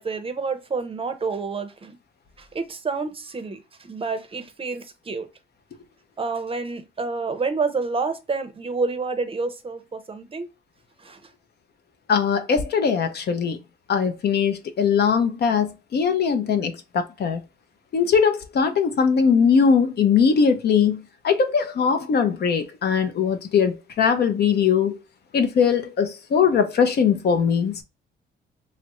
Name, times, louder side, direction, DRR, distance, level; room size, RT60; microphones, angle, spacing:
voice 1, 0.0-2.0 2.4-5.3 6.2-10.5 11.0-11.2, right 4 dB, 30° right, 0.6 m, -29 dB
voice 2, 12.1-13.6 13.9-17.4 17.9-21.0 21.2-25.0 25.3-27.8, left 6 dB, 55° left, 0.6 m, -20 dB
3.1 x 2.4 x 2.9 m
cardioid pair, 90°, 20 cm